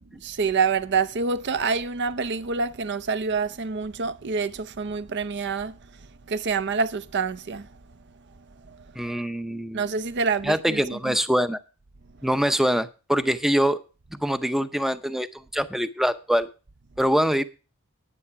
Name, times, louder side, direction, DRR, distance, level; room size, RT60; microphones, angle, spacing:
voice 1, 0.2-5.8 6.3-7.7 9.7-11.1, right 5 dB, 55° right, 0.7 m, -27 dB
voice 2, 9.0-9.8 10.4-11.6 12.2-13.8 14.1-15.3 15.5-16.5 17.0-17.4, equal, ahead, 0.6 m, -24 dB
9.9 x 9.6 x 4.6 m
head